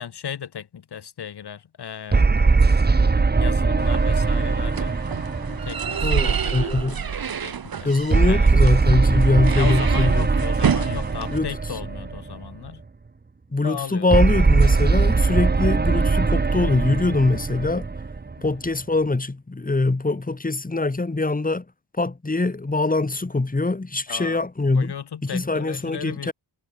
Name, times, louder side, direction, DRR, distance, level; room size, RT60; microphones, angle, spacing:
voice 1, 0.0-2.3 3.4-5.0 5.5-7.9 8.2-8.5 9.5-12.8 13.6-14.5 15.9-16.2 18.4-18.6 24.1-24.4 24.7-26.3, left 8 dB, 65° left, 2.9 m, -36 dB
sound 1, 2.1-6.7 8.1-12.5 14.1-18.7, right 4 dB, 25° right, 1.5 m, -20 dB
sound 2, 3.8-11.4, right 7 dB, 55° right, 3.4 m, -28 dB
voice 2, 6.0-7.0 7.8-10.3 11.3-11.5 13.5-17.9 18.4-21.6 22.0-24.9 25.2-26.3, left 3 dB, 20° left, 5.2 m, -23 dB
wide cardioid pair, 130°, 42 cm